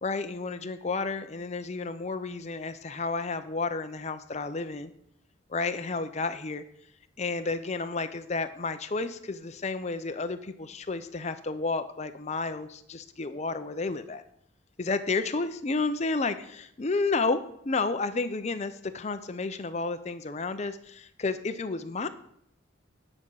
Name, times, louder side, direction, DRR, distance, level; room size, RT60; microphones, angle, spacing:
voice 1, 0.0-4.9 5.5-6.6 7.2-14.2 14.8-22.1, left 3 dB, 35° left, 10 dB, 0.6 m, -31 dB
10.0 x 5.4 x 6.3 m, 0.72 s
head